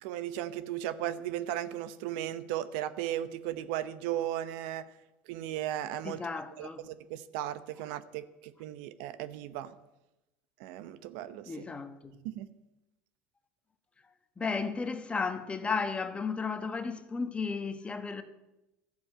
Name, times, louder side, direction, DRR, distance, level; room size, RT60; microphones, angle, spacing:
voice 1, 0.0-4.9 5.3-6.2 6.6-9.7 10.6-11.5 12.2-12.5, right 12 dB, 70° right, 0.8 m, -36 dB
voice 2, 6.0-6.8 11.5-12.2 14.4-18.2, left 4 dB, 20° left, 1.3 m, -34 dB
12.5 x 7.0 x 8.8 m
supercardioid pair, 95°, 5 cm